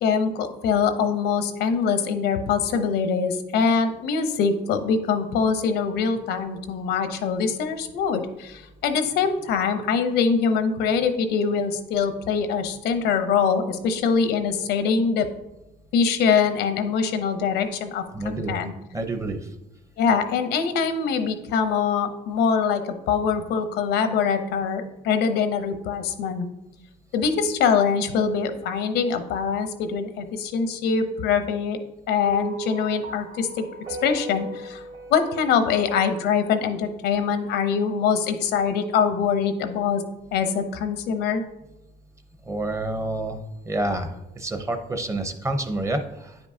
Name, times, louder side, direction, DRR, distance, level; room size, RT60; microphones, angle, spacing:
voice 1, 0.0-15.3 15.9-18.7 20.0-26.5 27.1-31.8 32.1-34.8 35.1-40.0 40.3-41.4, left 6 dB, 80° left, 8 dB, 0.8 m, -23 dB
voice 2, 18.1-18.6 18.9-19.5 42.4-43.4 43.7-46.4, right 2 dB, 15° right, 7 dB, 0.7 m, -28 dB
sound 1, 32.2-36.7, right 3 dB, 45° right, 1.1 m, -37 dB
9.4 x 5.3 x 2.7 m, 0.94 s
cardioid pair, 110°, 17 cm